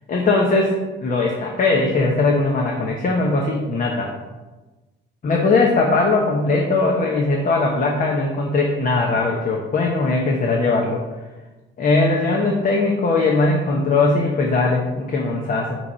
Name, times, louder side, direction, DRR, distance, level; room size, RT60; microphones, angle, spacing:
voice 1, 0.1-0.7 1.0-4.1 5.2-11.0 11.8-15.8, left 3 dB, 45° left, -1 dB, 1.0 m, -19 dB
6.9 x 3.1 x 5.5 m, 1.2 s
cardioid pair, 90°, 20 cm